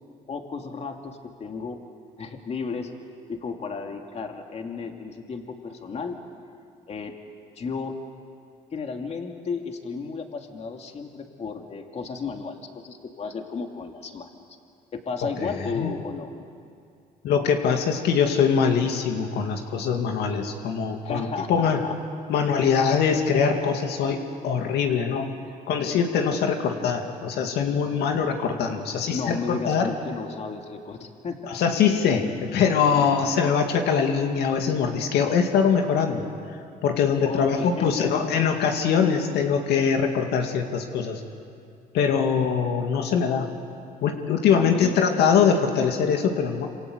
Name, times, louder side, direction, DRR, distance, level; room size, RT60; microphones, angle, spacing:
voice 1, 0.3-1.8 2.2-2.9 3.3-6.2 6.9-7.2 7.6-8.0 8.7-14.3 14.9-16.3 21.0-21.9 22.6-22.8 29.1-31.6 32.9-33.3 37.2-38.1 44.5-45.0, left 4 dB, 40° left, 3 dB, 2.6 m, -33 dB
voice 2, 17.2-21.9 22.3-25.3 25.7-29.9 31.5-36.2 36.8-41.2 41.9-43.5 44.0-46.7, left 6 dB, 75° left, 4 dB, 2.4 m, -23 dB
27.5 x 27.0 x 8.1 m, 2.4 s
cardioid pair, 110°, 17 cm